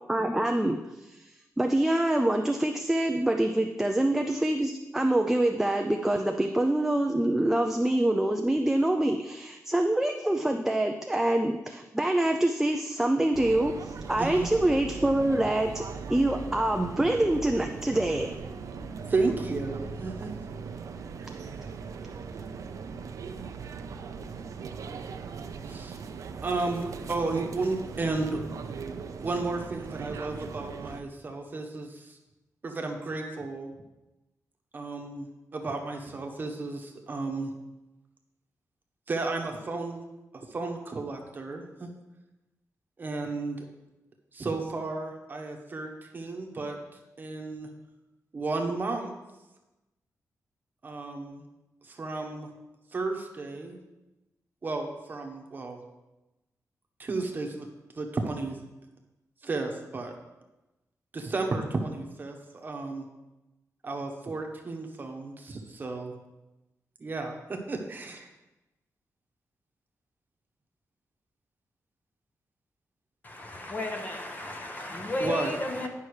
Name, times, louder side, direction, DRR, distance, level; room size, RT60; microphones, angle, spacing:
voice 1, 0.1-1.2 1.6-18.3, right 1 dB, 5° right, 4 dB, 0.4 m, -25 dB
sound 1, 13.3-31.0, right 5 dB, 65° right, 0.6 m, -39 dB
voice 2, 14.2-14.5 19.1-20.3 25.7-26.0 26.4-28.4 29.2-32.0 32.6-33.7 34.7-37.5 39.1-40.0 40.5-41.9 43.0-43.6 44.3-46.8 47.2-47.7 48.3-49.1 50.8-51.4 51.9-52.5 52.9-53.8 54.6-55.8 57.0-57.7 57.9-58.6 59.4-60.1 61.1-63.0 63.8-66.1 67.0-68.3 75.2-75.5, right 3 dB, 30° right, 2 dB, 1.1 m, -33 dB
voice 3, 73.2-75.9, left 1 dB, 30° left, 3 dB, 1.0 m, -33 dB
10.0 x 5.7 x 4.8 m, 1.0 s
wide cardioid pair, 170°, 6 cm